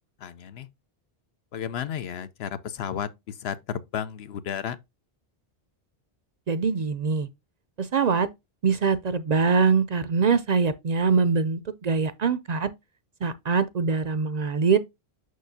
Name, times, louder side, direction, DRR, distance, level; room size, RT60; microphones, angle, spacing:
voice 1, 0.2-0.7 1.5-4.8, left 9 dB, 80° left, 0.9 m, -33 dB
voice 2, 6.5-7.3 7.8-8.3 8.6-12.7 13.2-14.8, right 5 dB, 55° right, 0.5 m, -23 dB
6.5 x 6.2 x 2.6 m
omnidirectional pair, 1.0 m